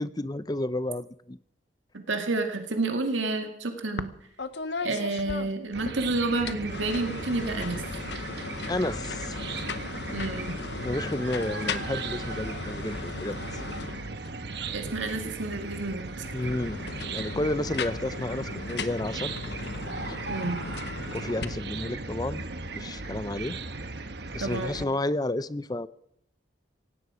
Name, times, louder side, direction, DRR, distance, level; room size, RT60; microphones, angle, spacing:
voice 1, 0.0-1.4 8.7-9.6 10.8-13.4 16.3-16.8 17.1-19.3 20.1-20.2 21.1-22.4 22.7-23.6 24.3-25.9, left 1 dB, 20° left, 16 dB, 0.5 m, -31 dB
voice 2, 1.9-4.1 4.8-7.8 10.1-10.5 14.7-16.1 20.3-20.6 24.4-24.8, right 2 dB, 80° right, 5 dB, 2.1 m, -30 dB
sound 1, 4.0-4.1 4.4-6.0 6.4-14.4 16.2-21.4, left 4 dB, 60° left, 1.0 m, -37 dB
Chicken rooster / Cricket, 5.7-24.8, right 3 dB, 55° right, 1.2 m, -37 dB
17.5 x 16.5 x 5.0 m, 0.75 s
head